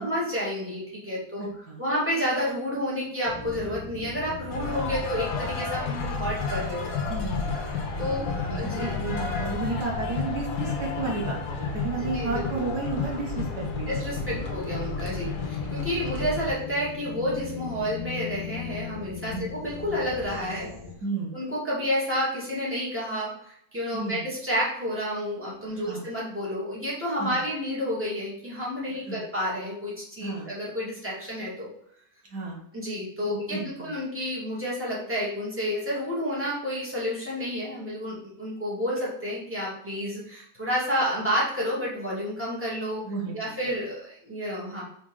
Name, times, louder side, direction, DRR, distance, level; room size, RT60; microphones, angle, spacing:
voice 1, 0.0-1.5 1.8-6.9 8.0-8.9 12.0-12.6 13.9-20.7 21.3-31.7 32.7-43.0 43.3-44.8, equal, 5° right, -7 dB, 2.4 m, -30 dB
voice 2, 1.4-1.8 7.1-14.5 19.3-19.5 21.0-21.5 23.9-24.2 25.7-26.0 27.2-27.4 29.1-29.2 30.2-30.5 32.3-32.6 33.2-33.9 43.0-43.6, right 3 dB, 70° right, -2 dB, 1.9 m, -33 dB
sound 1, 3.3-20.9, left 6 dB, 40° left, 0.4 m, -40 dB
sound 2, 4.5-16.5, left 4 dB, 70° left, 1.5 m, -31 dB
5.1 x 4.1 x 4.9 m, 0.70 s
omnidirectional pair, 1.8 m